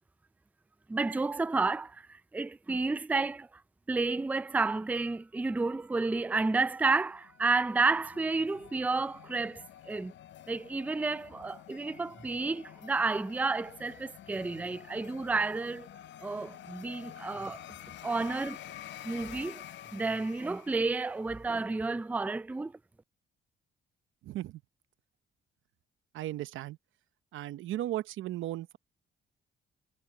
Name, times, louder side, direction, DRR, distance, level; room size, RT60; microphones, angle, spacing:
voice 1, 0.9-3.5 3.9-10.1 10.5-15.9 16.2-17.7 18.0-18.6 19.0-19.6 19.9-22.7, right 3 dB, 10° right, 0.4 m, -31 dB
sound 1, 6.8-21.5, left 11 dB, 65° left, 0.7 m, -49 dB
voice 2, 24.2-24.6 26.1-26.8 27.3-28.8, right 13 dB, 80° right, 0.8 m, -36 dB
cardioid pair, 90°, 20 cm